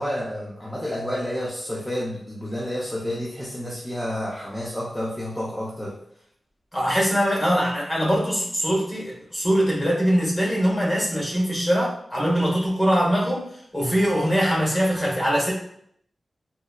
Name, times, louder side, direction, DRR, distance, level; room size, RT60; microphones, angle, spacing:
voice 1, 0.0-6.0 13.8-13.9, equal, 5° left, -6 dB, 0.6 m, -30 dB
voice 2, 6.7-15.5, equal, 25° left, -4 dB, 1.2 m, -22 dB
4.0 x 2.0 x 2.3 m, 0.69 s
wide cardioid pair, 75°, 0 cm